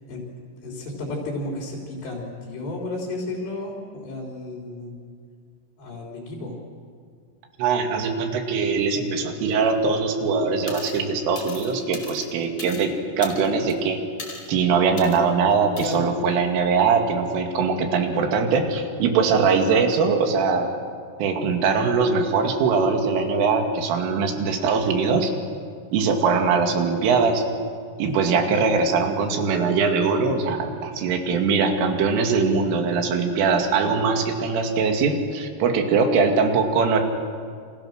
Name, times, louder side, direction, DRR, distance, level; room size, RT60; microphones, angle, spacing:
voice 1, 0.6-5.0 5.8-6.5 15.8-16.1 28.0-28.3, left 2 dB, 65° left, -2 dB, 5.7 m, -32 dB
voice 2, 7.6-14.0 14.5-20.7 21.2-25.3 25.9-27.4 28.0-37.0, right 5 dB, 90° right, 4 dB, 4.8 m, -21 dB
sound 1, 10.7-11.0 11.3-12.9 13.2-13.7 14.2-14.5 15.0-15.2 15.8-16.0, left 3 dB, 25° left, 2.3 m, -38 dB
29.0 x 27.0 x 6.5 m, 2.2 s
omnidirectional pair, 5.5 m